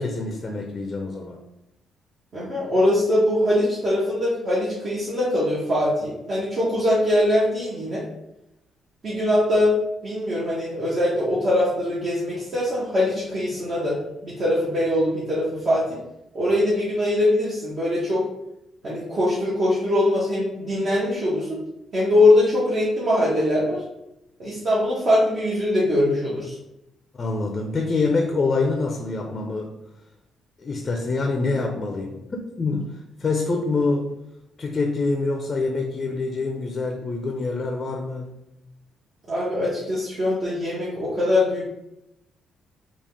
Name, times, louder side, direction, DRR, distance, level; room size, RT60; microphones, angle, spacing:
voice 1, 0.0-1.4 27.1-29.7 30.6-32.2 32.5-34.1 34.6-38.3, left 3 dB, 35° left, 3 dB, 0.5 m, -25 dB
voice 2, 2.3-8.0 9.0-15.9 16.3-18.2 18.8-21.6 21.9-23.8 24.4-26.5 39.3-41.6, left 1 dB, 45° right, -8 dB, 1.0 m, -22 dB
3.6 x 2.4 x 3.3 m, 0.88 s
cardioid pair, 90°, 0 cm